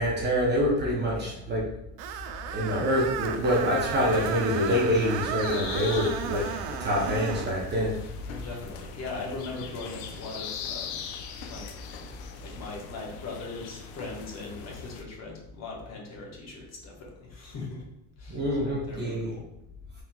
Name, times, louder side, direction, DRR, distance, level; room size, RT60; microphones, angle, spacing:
voice 1, 0.0-1.7 2.1-2.2 2.5-6.5 6.8-8.0 18.3-19.3, equal, 20° right, -4 dB, 0.6 m, -26 dB
voice 2, 0.9-1.4 8.3-11.0 11.5-11.7 12.4-17.8 18.2-19.4, left 3 dB, 35° left, -2 dB, 1.1 m, -40 dB
Screech, 2.0-7.5, right 9 dB, 85° right, 0.5 m, -34 dB
sound 1, 3.3-15.0, left 6 dB, 70° left, 0.6 m, -41 dB
sound 2, 3.7-9.9, left 5 dB, 5° right, 1.4 m, -47 dB
4.3 x 3.5 x 2.2 m, 0.81 s
supercardioid pair, 135°, 47 cm